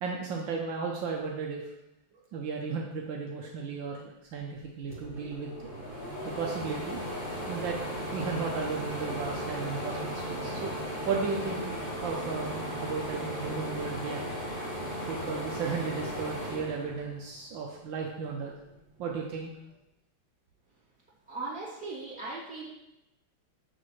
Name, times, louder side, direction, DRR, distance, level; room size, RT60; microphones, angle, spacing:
voice 1, 0.0-1.6 2.3-5.5 6.2-7.0 7.5-7.8 8.1-10.7 11.0-11.7 12.0-14.2 15.1-18.5 19.0-19.5, right 5 dB, 70° right, 0 dB, 1.4 m, -34 dB
sound 1, 4.6-4.7 4.9-17.5 17.9-19.1, equal, 30° right, 1.2 m, -36 dB
voice 2, 21.3-22.7, right 3 dB, 5° right, -10 dB, 2.4 m, -38 dB
6.7 x 6.6 x 3.2 m, 0.91 s
omnidirectional pair, 2.2 m